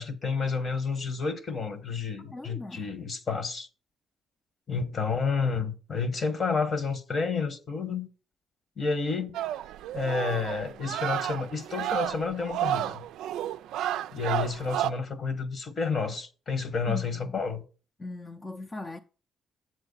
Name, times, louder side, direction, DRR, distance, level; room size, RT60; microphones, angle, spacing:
voice 1, 0.0-3.7 4.7-8.1 8.8-9.4 9.9-13.0 14.1-17.6, left 4 dB, 50° left, 1.2 m, -30 dB
voice 2, 2.3-2.9 16.9-17.3 18.0-19.0, left 2 dB, 25° left, 0.5 m, -39 dB
sound 1, 9.3-14.9, right 12 dB, 85° right, 0.3 m, -31 dB
7.9 x 7.8 x 4.0 m
cardioid pair, 90°, 0 cm